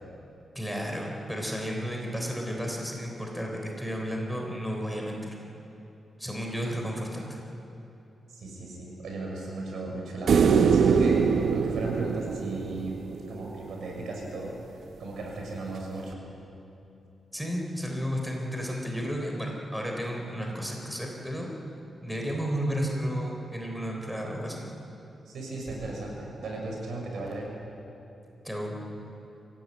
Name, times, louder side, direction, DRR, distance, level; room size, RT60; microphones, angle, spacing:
voice 1, 0.6-5.4 6.2-7.4 17.3-21.5 22.0-24.7 28.4-28.8, equal, ahead, 0 dB, 3.4 m, -32 dB
voice 2, 8.4-14.5 15.0-16.2 25.3-27.5, right 2 dB, 90° right, -1 dB, 6.4 m, -36 dB
sound 1, 10.3-13.5 16.1-16.2, right 6 dB, 70° right, 0.7 m, -23 dB
24.0 x 16.5 x 9.5 m, 2.9 s
wide cardioid pair, 155°, 0 cm